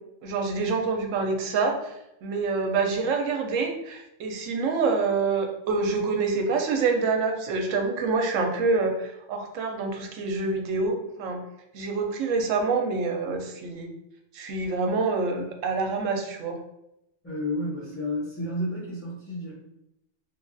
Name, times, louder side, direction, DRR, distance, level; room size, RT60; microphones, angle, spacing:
voice 1, 0.2-11.4 11.7-13.9 14.3-16.6, right 4 dB, 80° right, 3 dB, 0.9 m, -26 dB
voice 2, 17.2-19.5, left 1 dB, 10° left, -9 dB, 0.7 m, -31 dB
2.9 x 2.3 x 2.5 m, 0.85 s
omnidirectional pair, 1.3 m